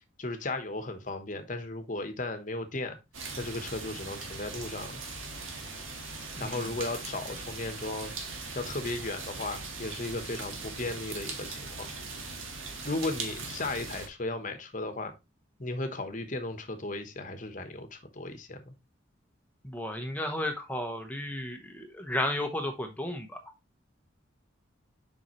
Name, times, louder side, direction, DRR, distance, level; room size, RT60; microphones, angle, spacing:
voice 1, 0.2-3.0 3.4-5.0 6.4-8.1 8.5-11.9 12.8-15.1 15.6-18.7, left 2 dB, 40° left, 1.1 m, -35 dB
sound 1, 3.1-14.1, right 3 dB, 75° right, 1.7 m, -40 dB
voice 2, 6.4-6.7 19.6-23.4, left 1 dB, 10° left, 0.8 m, -33 dB
6.9 x 5.3 x 3.1 m
head